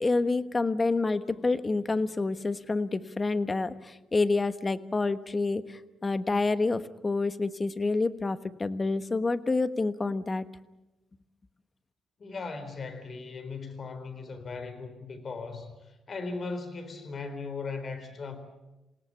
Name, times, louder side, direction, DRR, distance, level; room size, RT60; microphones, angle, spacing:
voice 1, 0.0-10.5, left 3 dB, 25° left, 13 dB, 1.2 m, -28 dB
voice 2, 12.2-18.4, left 4 dB, 40° left, 10 dB, 4.0 m, -38 dB
28.0 x 18.0 x 8.5 m, 1.0 s
cardioid pair, 90°, 0 cm